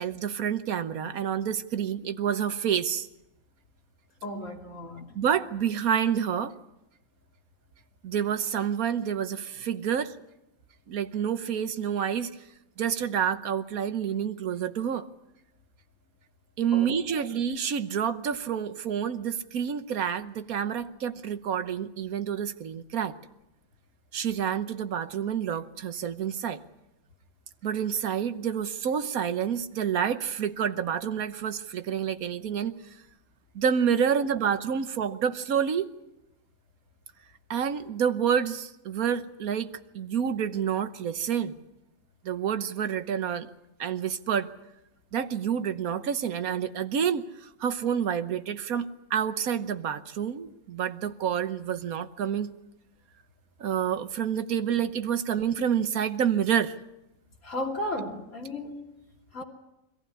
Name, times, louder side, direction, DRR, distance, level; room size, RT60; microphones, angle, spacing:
voice 1, 0.0-3.1 5.1-6.5 8.0-10.1 10.9-12.3 12.8-15.1 16.6-23.1 24.1-26.6 27.6-32.8 33.5-35.9 37.5-41.5 42.2-43.5 43.8-44.5 45.1-52.5 53.6-56.7, right 8 dB, 90° right, 11 dB, 1.5 m, -28 dB
voice 2, 4.2-5.1 16.7-17.3 57.4-58.8 59.3-59.4, left 1 dB, 60° left, -1 dB, 3.3 m, -35 dB
24.5 x 15.0 x 9.9 m, 0.92 s
omnidirectional pair, 1.5 m